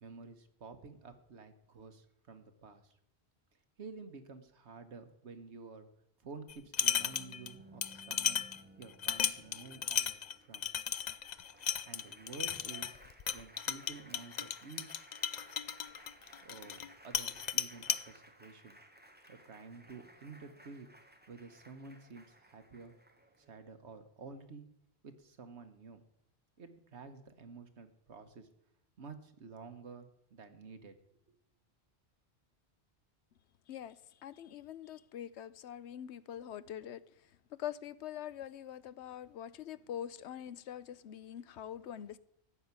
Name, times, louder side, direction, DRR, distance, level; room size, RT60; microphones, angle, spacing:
voice 1, 0.0-2.9 3.8-5.9 6.2-8.4 8.8-10.7 11.9-13.0 13.3-15.0 16.4-18.8 19.3-20.9 21.3-22.9 23.4-24.7 25.0-26.1 26.6-28.5 29.0-31.0 31.3-31.4, right 4 dB, 80° right, 1.5 m, -51 dB
sound 1, 6.5-7.5 7.8-16.9 17.1-18.0, left 8 dB, 50° left, 0.6 m, -35 dB
Applause, 6.8-23.7, right 1 dB, 10° right, 1.2 m, -59 dB
voice 2, 33.7-37.0 37.5-42.2, left 10 dB, 90° left, 1.0 m, -44 dB
14.5 x 5.8 x 9.5 m
omnidirectional pair, 1.1 m